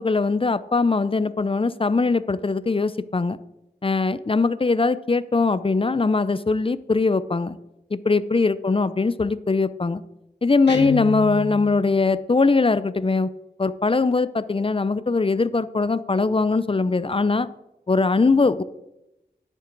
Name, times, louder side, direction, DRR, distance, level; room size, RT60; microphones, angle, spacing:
voice 1, 0.0-3.4 3.8-7.6 7.9-10.0 10.4-13.3 13.6-17.5 17.9-18.6, left 3 dB, 30° left, 16 dB, 0.4 m, -21 dB
Guitar, 10.7-11.8, left 5 dB, 80° left, 1.1 m, -29 dB
9.9 x 8.9 x 3.9 m, 0.91 s
wide cardioid pair, 55°, 18 cm